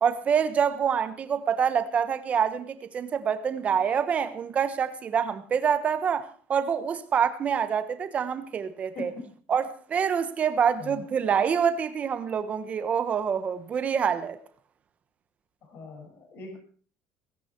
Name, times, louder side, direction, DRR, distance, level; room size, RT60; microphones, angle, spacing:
voice 1, 0.0-9.1 9.5-14.4, right 7 dB, 25° right, 1.2 m, -26 dB
voice 2, 8.9-9.4 10.8-11.0 15.6-16.6, left 4 dB, 45° left, 6.7 m, -41 dB
17.0 x 16.5 x 4.6 m
cardioid pair, 180°, 5 cm